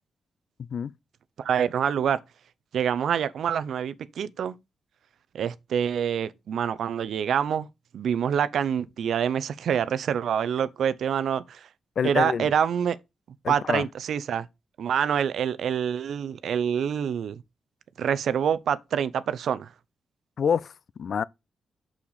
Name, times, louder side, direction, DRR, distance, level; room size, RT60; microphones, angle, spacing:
voice 1, 0.6-0.9 12.0-12.5 13.4-13.9 20.4-20.7 21.0-21.2, left 7 dB, 65° left, 0.4 m, -26 dB
voice 2, 1.4-2.2 2.7-4.5 5.3-7.7 7.9-11.7 12.0-13.0 13.5-14.5 14.8-17.4 18.0-19.7, right 8 dB, 75° right, 0.5 m, -26 dB
6.5 x 5.9 x 4.0 m
cardioid pair, 75°, 0 cm